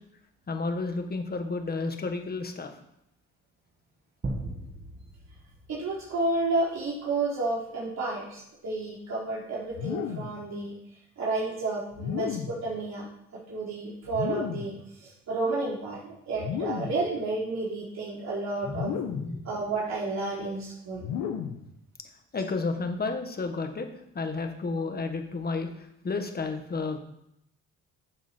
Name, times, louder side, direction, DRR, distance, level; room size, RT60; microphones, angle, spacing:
voice 1, 0.5-2.7 18.6-19.4 22.3-23.9 24.1-27.0, left 3 dB, 30° left, 5 dB, 1.7 m, -32 dB
sound 1, 4.2-6.8, right 2 dB, 30° right, 1.8 m, -38 dB
voice 2, 5.7-10.7 11.2-13.1 13.5-18.9 19.4-21.0, right 3 dB, 60° right, -6 dB, 3.7 m, -31 dB
sound 2, 9.7-10.4 11.9-12.7 14.1-14.8 16.3-17.1 18.7-19.4 21.0-21.7, left 7 dB, 85° left, 1.3 m, -33 dB
12.0 x 7.2 x 4.5 m, 0.78 s
cardioid pair, 90°, 30 cm